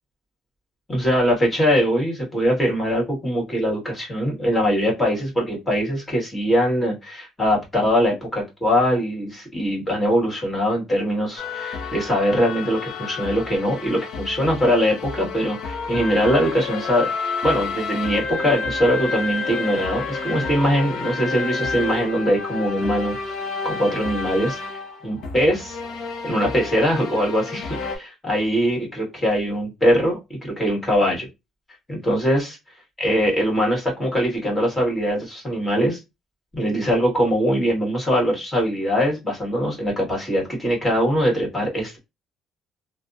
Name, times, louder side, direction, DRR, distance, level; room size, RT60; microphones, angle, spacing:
voice 1, 0.9-17.1 17.4-23.2 23.6-25.8 26.2-31.3 31.9-32.5 33.0-36.0 36.5-42.0, equal, 20° left, 0 dB, 1.7 m, -22 dB
sound 1, 11.4-28.0, left 4 dB, 70° left, 0.8 m, -30 dB
3.3 x 2.2 x 2.6 m, 0.22 s
cardioid pair, 105°, 0 cm